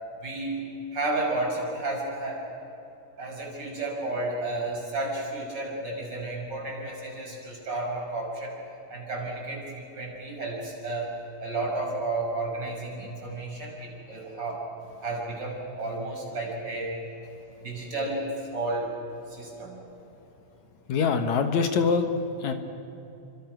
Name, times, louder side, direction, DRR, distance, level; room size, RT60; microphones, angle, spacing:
voice 1, 0.2-0.6 0.9-2.4 3.2-8.5 8.9-14.7 15.0-17.0 17.6-18.9 19.3-19.8, right 2 dB, 35° right, -2 dB, 6.4 m, -32 dB
voice 2, 20.9-22.1 22.4-22.5, left 5 dB, 70° left, 7 dB, 2.7 m, -23 dB
30.0 x 25.5 x 6.1 m, 3.0 s
omnidirectional pair, 3.4 m